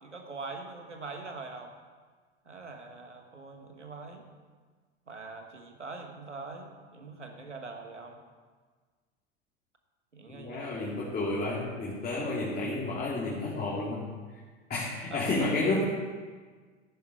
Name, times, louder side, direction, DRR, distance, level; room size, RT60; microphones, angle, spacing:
voice 1, 0.0-1.7 2.4-4.3 5.1-8.2 10.1-11.1 15.1-15.5, right 3 dB, 90° right, 4 dB, 1.5 m, -43 dB
voice 2, 10.3-14.0 14.7-15.8, left 2 dB, 25° left, -6 dB, 3.1 m, -31 dB
13.5 x 11.0 x 4.8 m, 1.5 s
figure-of-eight pair, 80°, 35 cm